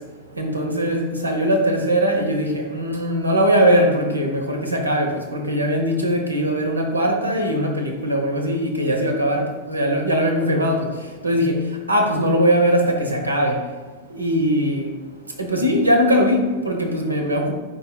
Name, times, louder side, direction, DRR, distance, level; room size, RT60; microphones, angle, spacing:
voice 1, 0.4-10.9 11.2-11.6 11.9-13.6 14.1-14.9 15.4-17.5, equal, 80° right, 0.9 m, -20 dB
10.5 x 4.2 x 2.3 m
figure-of-eight pair, 90°, 0 cm